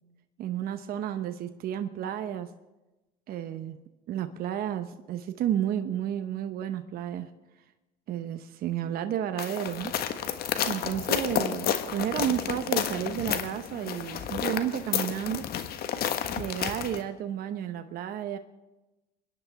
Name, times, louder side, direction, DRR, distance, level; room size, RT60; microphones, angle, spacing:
voice 1, 0.4-2.5 3.3-3.8 4.1-7.3 8.1-9.9 10.7-15.4 16.3-18.4, right 10 dB, 50° right, 9 dB, 0.9 m, -32 dB
sound 1, 9.4-17.0, left 9 dB, 50° left, 1.4 m, -31 dB
29.0 x 10.5 x 3.5 m, 1.1 s
hypercardioid pair, 80°, 20 cm